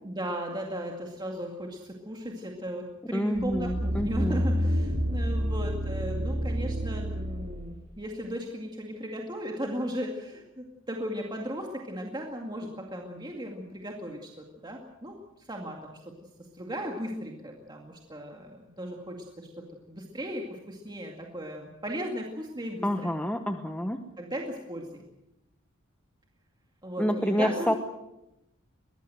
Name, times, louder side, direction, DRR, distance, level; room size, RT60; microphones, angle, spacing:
voice 1, 0.0-16.1 16.4-23.2 24.2-25.0 26.8-27.8, equal, 20° right, 1 dB, 2.2 m, -36 dB
voice 2, 3.1-4.4 22.8-24.0 27.0-27.7, equal, 5° left, 6 dB, 1.0 m, -28 dB
sound 1, 3.4-7.7 8.2-8.3, equal, 85° right, 3.7 m, -29 dB
22.5 x 18.5 x 7.8 m, 0.90 s
head